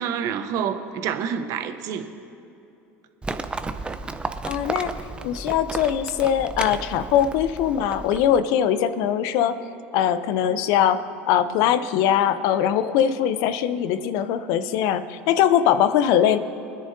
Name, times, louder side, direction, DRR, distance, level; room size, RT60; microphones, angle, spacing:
voice 1, 0.0-2.1, right 8 dB, 55° right, 9 dB, 0.9 m, -28 dB
Livestock farm animals working animals, 3.2-8.4, right 3 dB, 15° right, 0.7 m, -33 dB
voice 2, 4.4-4.9 5.2-9.6 9.9-16.4, left 9 dB, 65° left, 13 dB, 0.6 m, -21 dB
24.0 x 10.0 x 2.7 m, 2.7 s
hypercardioid pair, 90°, 7 cm